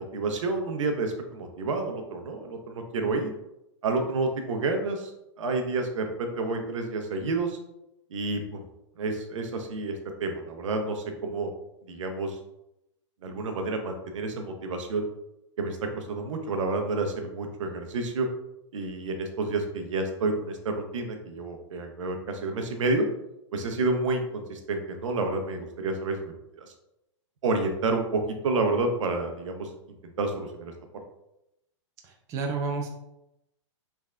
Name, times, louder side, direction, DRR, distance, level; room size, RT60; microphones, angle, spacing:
voice 1, 0.0-3.3 3.8-5.1 5.4-7.6 8.1-8.6 9.0-9.9 10.2-11.5 11.9-12.4 13.2-15.0 15.6-18.3 18.7-23.0 23.5-26.3 27.4-29.7 30.2-30.7, right 3 dB, 75° right, 4 dB, 0.7 m, -29 dB
voice 2, 32.0-32.9, right 4 dB, 20° right, 1 dB, 0.4 m, -31 dB
3.4 x 3.2 x 2.4 m, 0.85 s
hypercardioid pair, 145°, 16 cm